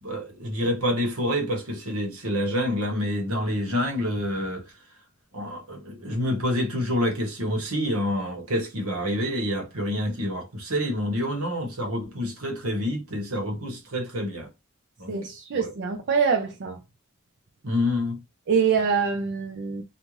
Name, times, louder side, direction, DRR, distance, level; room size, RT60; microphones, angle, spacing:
voice 1, 0.0-4.6 5.3-14.5 15.0-15.1 15.5-15.7 17.6-18.2, left 1 dB, 80° right, 1.1 m, -27 dB
voice 2, 15.1-16.8 18.5-19.8, right 6 dB, 50° right, 0.4 m, -24 dB
2.5 x 2.3 x 3.1 m
head